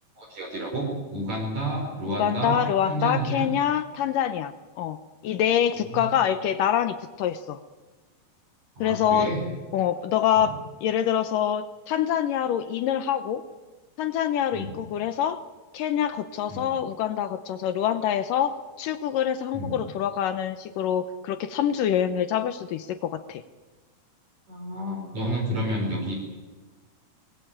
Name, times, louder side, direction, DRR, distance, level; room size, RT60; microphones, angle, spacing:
voice 1, 0.2-3.5 5.9-6.1 8.8-9.4 10.4-10.5 14.5-14.7 16.5-16.6 19.5-19.8 24.5-26.1, right 1 dB, 45° right, 0 dB, 5.8 m, -30 dB
voice 2, 2.1-4.5 4.8-5.0 5.2-7.6 8.8-9.3 9.7-13.4 14.0-15.4 15.7-23.4, left 9 dB, 70° left, 11 dB, 2.2 m, -25 dB
24.0 x 20.5 x 8.9 m, 1.3 s
omnidirectional pair, 4.4 m